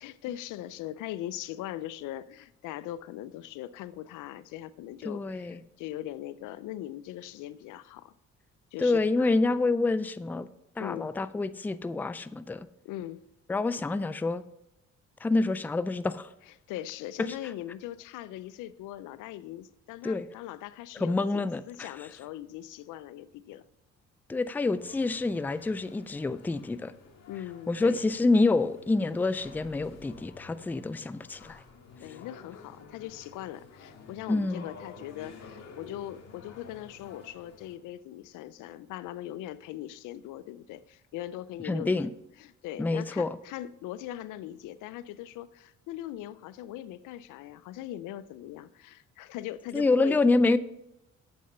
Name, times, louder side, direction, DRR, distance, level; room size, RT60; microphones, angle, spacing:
voice 1, 0.0-8.1 8.7-9.6 10.8-11.1 12.8-13.2 16.7-23.6 27.3-28.0 32.0-42.1 42.4-50.2, left 13 dB, 90° left, 0.5 m, -40 dB
voice 2, 5.0-5.6 8.8-10.5 10.8-12.7 13.5-14.4 15.2-16.3 20.0-20.3 21.0-21.9 24.3-26.9 27.7-31.6 34.3-34.7 41.6-42.1 42.8-43.4 49.7-50.6, left 3 dB, 5° left, 0.3 m, -27 dB
sound 1, 24.7-37.7, left 5 dB, 60° left, 1.8 m, -51 dB
8.0 x 6.2 x 5.5 m
cardioid pair, 90°, 30 cm